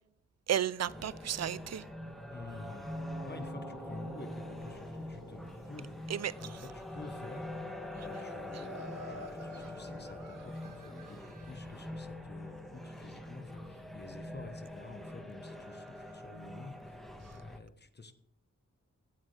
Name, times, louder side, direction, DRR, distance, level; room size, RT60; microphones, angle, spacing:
voice 1, 0.5-1.9 6.1-6.6 8.5-8.7 17.2-17.3, right 10 dB, 55° right, 0.5 m, -34 dB
sound 1, 0.8-17.6, left 1 dB, ahead, 1.5 m, -44 dB
voice 2, 2.3-2.9 3.2-5.9 6.4-7.5 8.0-18.1, left 3 dB, 35° left, 1.2 m, -49 dB
sound 2, 4.5-11.6, left 2 dB, 60° left, 5.4 m, -63 dB
Laughter, 8.6-11.8, right 1 dB, 85° right, 1.4 m, -51 dB
15.5 x 8.7 x 3.3 m
wide cardioid pair, 95°, 31 cm